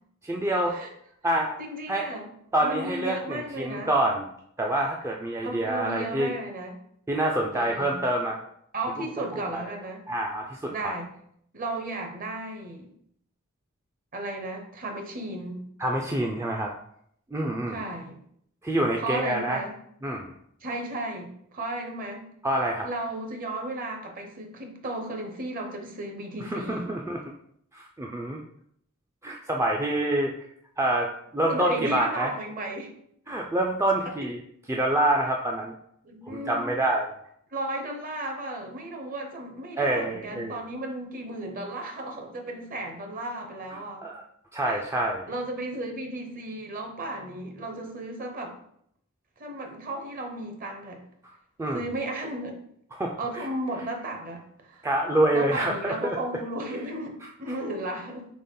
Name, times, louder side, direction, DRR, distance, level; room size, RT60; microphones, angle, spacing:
voice 1, 0.2-0.8 1.2-1.6 1.9-2.1 2.5-4.3 4.6-6.4 7.1-8.4 9.3-9.6 10.1-10.9 15.8-16.7 17.3-17.8 18.6-19.6 20.0-20.3 22.4-22.9 26.4-27.2 27.7-28.4 29.2-30.3 30.8-32.3 33.3-34.4 34.7-35.7 36.3-37.1 39.8-40.5 43.7-44.2 44.5-45.3 51.6-51.8 52.9-53.5 54.8-56.2, right 1 dB, 15° right, 0 dB, 0.3 m, -26 dB
voice 2, 1.6-2.3 2.6-3.9 5.4-6.7 7.5-8.0 8.7-10.0 10.7-11.1 11.5-12.9 14.1-15.6 17.7-18.2 19.0-19.7 20.6-22.3 22.8-26.9 31.5-32.9 36.0-36.8 37.5-44.0 44.6-44.8 45.3-48.6 49.4-51.0 51.7-52.5 53.2-54.8 55.3-58.3, right 1 dB, 40° right, 3 dB, 0.8 m, -34 dB
4.1 x 3.3 x 3.7 m, 0.70 s
head